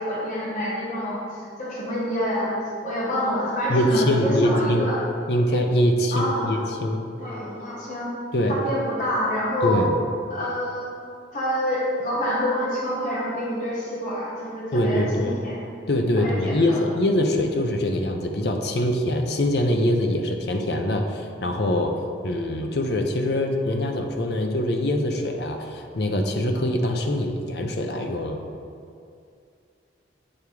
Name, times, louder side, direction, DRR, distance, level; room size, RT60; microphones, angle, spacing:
voice 1, 0.0-2.5 2.8-5.0 6.1-6.6 7.2-8.1 8.5-9.8 10.3-10.9 11.3-15.6 16.2-16.8, equal, 40° left, -6 dB, 1.5 m, -27 dB
voice 2, 3.7-4.9 5.3-7.0 8.3-8.6 9.6-9.9 14.7-15.4 15.9-21.9 22.2-28.4, left 1 dB, 60° left, 3 dB, 0.6 m, -23 dB
8.7 x 3.5 x 4.6 m, 2.4 s
head